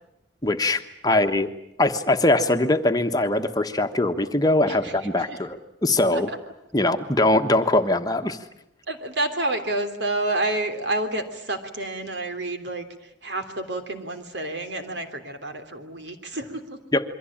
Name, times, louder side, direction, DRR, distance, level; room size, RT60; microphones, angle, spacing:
voice 1, 0.4-1.5 1.8-6.3 6.7-8.4 16.9-17.0, left 2 dB, 20° left, 6 dB, 1.2 m, -22 dB
voice 2, 4.7-5.4 6.1-6.4 8.9-16.8, right 2 dB, 75° right, 6 dB, 3.3 m, -29 dB
27.5 x 23.0 x 8.8 m, 0.78 s
head